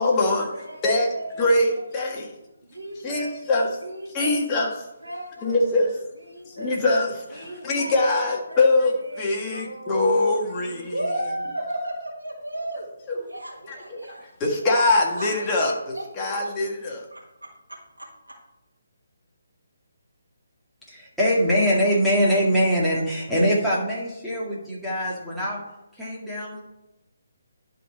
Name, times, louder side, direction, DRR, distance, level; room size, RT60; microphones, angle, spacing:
voice 1, 0.0-0.5 0.8-2.3 3.0-3.7 4.1-4.7 5.4-6.0 6.5-10.9 13.1-13.2 13.7-13.8 14.4-17.1, left 2 dB, 20° left, -1 dB, 1.5 m, -23 dB
voice 2, 0.5-3.3 3.8-4.4 5.0-5.7 6.2-6.8 7.3-10.3 10.6-12.9 13.3-14.2 15.1-16.4 17.1-17.2 18.0-18.1, right 1 dB, 85° right, -2 dB, 1.6 m, -35 dB
voice 3, 20.9-25.6 26.0-26.6, equal, ahead, -9 dB, 2.0 m, -23 dB
11.0 x 4.1 x 4.1 m, 0.94 s
figure-of-eight pair, 145°, 0 cm